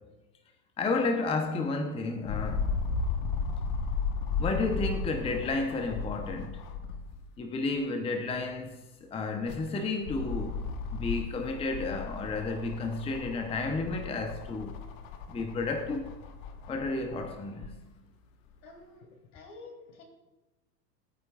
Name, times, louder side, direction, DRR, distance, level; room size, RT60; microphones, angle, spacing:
voice 1, 0.8-2.7 4.4-6.7 7.4-14.8 15.3-16.1 16.7-17.8, left 3 dB, 10° left, 0.8 m, -32 dB
sound 1, 2.3-7.3 7.8-7.9 9.2-17.7 18.5-18.6, left 4 dB, 40° left, 1.2 m, -35 dB
voice 2, 18.6-20.0, left 3 dB, 65° left, 3.5 m, -49 dB
20.5 x 9.1 x 2.4 m
hypercardioid pair, 105°, 49 cm